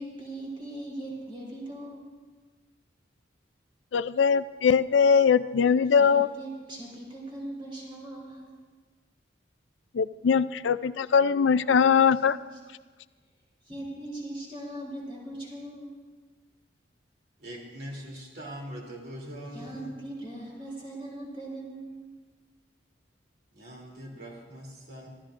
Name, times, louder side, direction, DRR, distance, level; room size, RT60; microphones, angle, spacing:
voice 1, 0.0-2.1 6.0-8.5 12.5-12.6 13.6-16.0 19.5-22.2, right 1 dB, 30° right, -3 dB, 3.8 m, -40 dB
voice 2, 3.9-6.3 9.9-12.4, left 6 dB, 80° left, 14 dB, 0.4 m, -21 dB
voice 3, 17.4-20.0 23.5-25.1, equal, 55° right, -2 dB, 2.9 m, -42 dB
25.5 x 14.0 x 2.5 m, 1.4 s
head